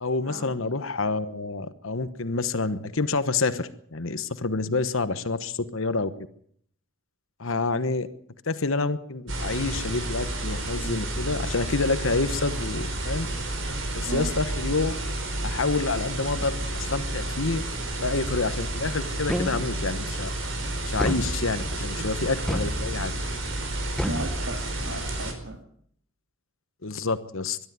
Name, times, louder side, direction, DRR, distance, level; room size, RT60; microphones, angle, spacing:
voice 1, 0.0-6.1 7.4-8.1 8.4-13.3 13.9-14.9 15.4-17.6 18.0-20.3 20.9-23.1 26.8-27.6, left 3 dB, 75° left, 12 dB, 1.2 m, -28 dB
sound 1, 9.3-25.3, right 1 dB, 65° right, 4.9 m, -31 dB
sound 2, 19.3-20.0 21.0-21.8 22.5-23.3 24.0-25.0, equal, 5° left, 1.0 m, -31 dB
voice 2, 24.1-25.6, right 1 dB, 85° right, 2 dB, 2.7 m, -36 dB
22.0 x 12.5 x 9.5 m, 0.64 s
head